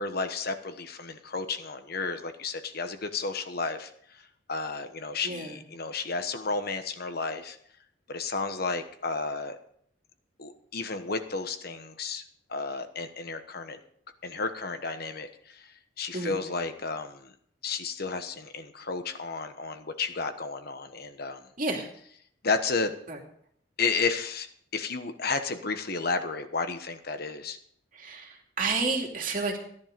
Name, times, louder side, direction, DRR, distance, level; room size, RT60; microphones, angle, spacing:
voice 1, 0.0-3.9 4.5-7.6 8.1-9.6 10.4-12.2 12.5-13.8 14.2-15.7 16.0-17.3 17.6-21.4 22.4-22.9 23.8-24.5 24.7-27.6, left 4 dB, 50° left, 8 dB, 1.2 m, -32 dB
voice 2, 5.2-5.6 16.1-16.4 21.6-21.9 23.1-23.2 28.0-29.6, right 3 dB, 45° right, 2 dB, 2.6 m, -30 dB
15.0 x 11.0 x 5.2 m, 0.65 s
head